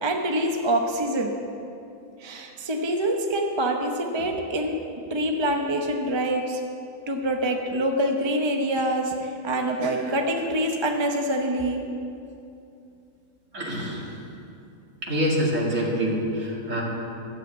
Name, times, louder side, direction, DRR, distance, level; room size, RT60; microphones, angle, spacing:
voice 1, 0.0-1.3 2.2-4.8 5.1-6.6 7.1-11.8, right 1 dB, 25° right, 3 dB, 0.6 m, -25 dB
voice 2, 13.5-14.2 15.0-16.8, equal, 55° right, -3 dB, 2.6 m, -26 dB
12.0 x 7.9 x 8.0 m, 2.6 s
omnidirectional pair, 1.6 m